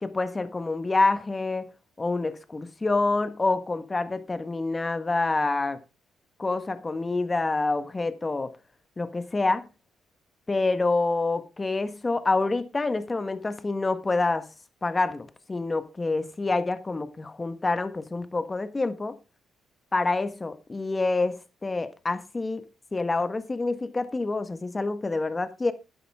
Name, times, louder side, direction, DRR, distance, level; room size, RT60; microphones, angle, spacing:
voice 1, 0.0-1.7 2.0-5.8 6.4-8.5 9.0-9.6 10.5-14.5 14.8-19.2 19.9-22.6 22.9-25.7, left 3 dB, 25° left, 1.4 m, -27 dB
12.0 x 10.0 x 3.6 m
cardioid pair, 90°, 0 cm